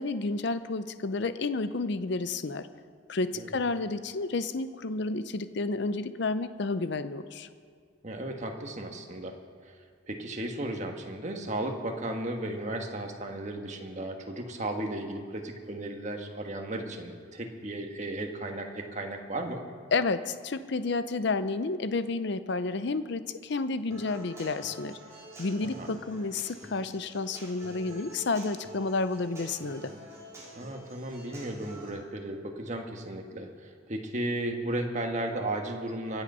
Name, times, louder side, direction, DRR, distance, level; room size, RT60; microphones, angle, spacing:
voice 1, 0.0-2.7 3.1-7.5 19.9-25.0 25.4-29.9, left 3 dB, 55° left, 12 dB, 0.6 m, -31 dB
voice 2, 8.0-9.4 9.6-9.7 10.0-19.6 25.6-25.9 30.5-36.2, right 1 dB, 35° right, 3 dB, 1.4 m, -35 dB
Human voice / Acoustic guitar, 23.9-31.9, right 1 dB, 15° right, 4.0 m, -47 dB
24.0 x 8.0 x 5.5 m, 2.1 s
head